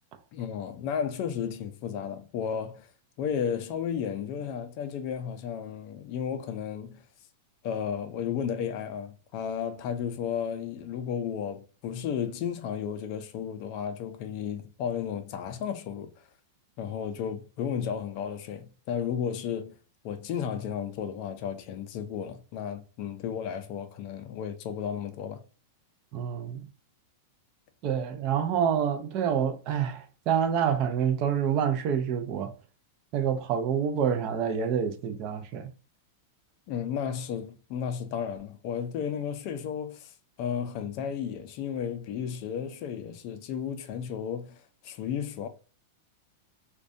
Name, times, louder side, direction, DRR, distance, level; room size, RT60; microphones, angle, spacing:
voice 1, 0.3-2.9 3.2-7.0 7.6-16.1 16.8-19.7 20.0-25.4 36.7-40.1 40.4-45.5, left 8 dB, 40° left, 0.3 m, -33 dB
voice 2, 26.1-26.7 27.8-32.5 33.1-35.7, right 8 dB, 35° right, 0.3 m, -27 dB
2.5 x 2.2 x 2.5 m
supercardioid pair, 165°, 0 cm